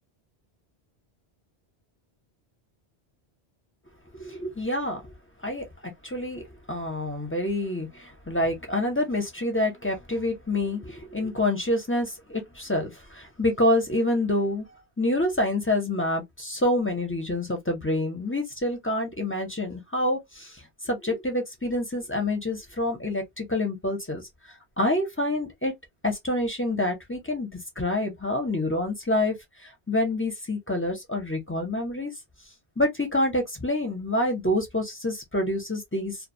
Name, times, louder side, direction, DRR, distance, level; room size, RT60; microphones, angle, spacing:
voice 1, 4.2-5.1 5.4-6.4 6.7-14.6 15.0-24.2 24.8-25.7 26.0-27.5 27.8-29.3 29.6-32.1 32.8-36.2, left 1 dB, 15° left, 0.5 m, -27 dB
2.3 x 2.2 x 2.6 m
omnidirectional pair, 1.1 m